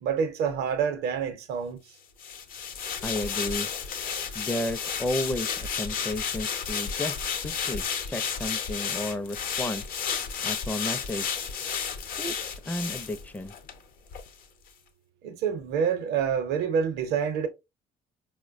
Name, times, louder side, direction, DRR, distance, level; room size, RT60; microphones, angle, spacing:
voice 1, 0.0-1.8 15.2-17.5, right 7 dB, 80° right, 0.7 m, -27 dB
sound 1, 2.2-13.8 14.1-14.3, left 7 dB, 60° left, 0.6 m, -32 dB
voice 2, 3.0-3.7 4.3-9.8 10.4-11.3 12.2-12.3 12.7-13.5, left 1 dB, 10° left, 0.4 m, -33 dB
4.4 x 2.1 x 2.5 m
cardioid pair, 110°, 17 cm